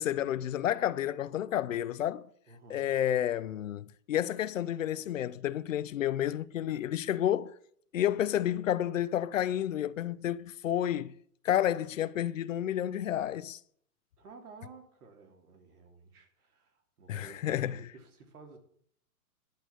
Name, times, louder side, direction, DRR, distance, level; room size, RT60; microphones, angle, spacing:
voice 1, 0.0-2.2 2.7-7.5 7.9-11.1 11.4-13.6 17.1-17.8, left 11 dB, 55° left, 0.6 m, -30 dB
voice 2, 2.5-2.9 14.2-18.6, right 4 dB, 70° right, 3.3 m, -53 dB
11.5 x 7.8 x 8.3 m
hypercardioid pair, 170°, 47 cm